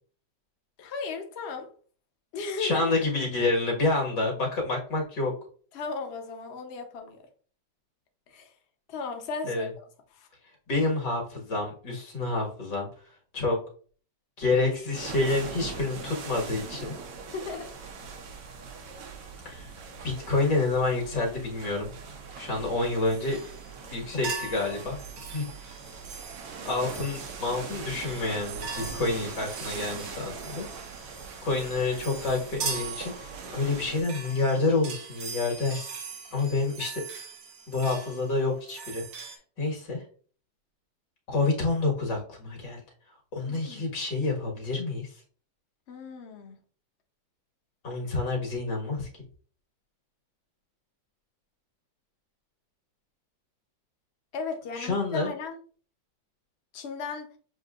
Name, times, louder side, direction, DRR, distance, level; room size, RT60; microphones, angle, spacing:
voice 1, 0.8-1.7 2.3-2.9 5.7-7.2 8.3-8.5 8.9-9.8 10.1-10.3 17.3-17.7 43.5-43.9 45.9-46.6 54.3-55.6 56.7-57.3, left 4 dB, 50° left, 0.8 m, -36 dB
voice 2, 2.6-5.3 9.4-9.7 10.7-12.9 13.3-13.6 14.4-17.0 19.5-19.7 20.0-21.9 22.4-23.4 23.9-25.0 25.3-25.5 26.7-30.7 31.4-36.0 36.3-37.0 37.7-39.0 39.6-40.0 41.3-42.8 43.3-45.2 47.8-49.1 54.7-55.3, left 3 dB, 70° left, 2.1 m, -28 dB
sound 1, 14.9-34.0, right 5 dB, 80° right, 1.5 m, -41 dB
sound 2, 23.1-23.9 24.2-39.4, right 5 dB, 65° right, 1.3 m, -41 dB
7.6 x 2.7 x 2.4 m
omnidirectional pair, 1.9 m